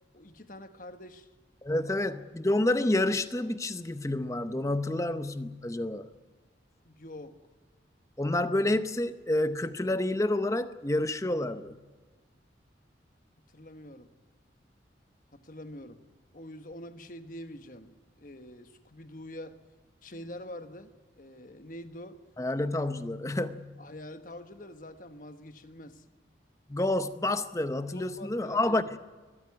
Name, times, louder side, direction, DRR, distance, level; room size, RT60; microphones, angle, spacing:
voice 1, 0.1-1.3 1.8-2.0 6.8-7.3 13.5-14.1 15.3-16.0 16.3-19.6 20.0-20.9 21.2-22.2 23.8-26.0 27.9-28.8, left 1 dB, 45° left, 1.3 m, -45 dB
voice 2, 1.6-6.1 8.2-11.8 22.4-23.8 26.7-29.0, left 1 dB, 15° left, 0.7 m, -29 dB
22.0 x 14.0 x 9.6 m
head